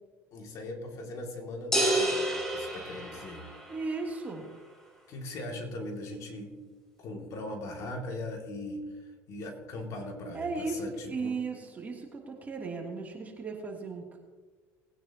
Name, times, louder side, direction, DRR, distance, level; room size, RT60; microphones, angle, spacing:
voice 1, 0.3-3.4 5.1-6.6 7.0-8.8 9.3-11.4, left 1 dB, 50° left, 2 dB, 2.6 m, -39 dB
sound 1, 1.7-3.8, right 1 dB, 5° left, 3.2 m, -29 dB
voice 2, 3.7-4.4 10.3-10.8 11.1-14.2, right 4 dB, 25° right, -1 dB, 2.9 m, -36 dB
20.5 x 9.4 x 3.0 m, 1.4 s
supercardioid pair, 110°, 7 cm